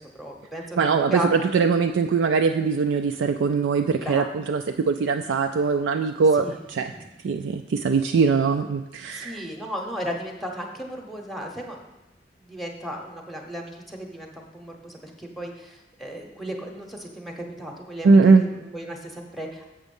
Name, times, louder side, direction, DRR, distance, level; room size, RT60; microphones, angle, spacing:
voice 1, 0.0-0.8 1.1-1.3 3.9-4.2 6.3-6.6 6.9-7.1 9.1-12.0 12.4-19.7, equal, ahead, 1 dB, 0.8 m, -35 dB
voice 2, 0.8-6.5 6.7-6.9 7.2-9.4 18.0-18.4, right 4 dB, 75° right, 6 dB, 0.4 m, -21 dB
7.1 x 6.3 x 5.3 m, 1.0 s
head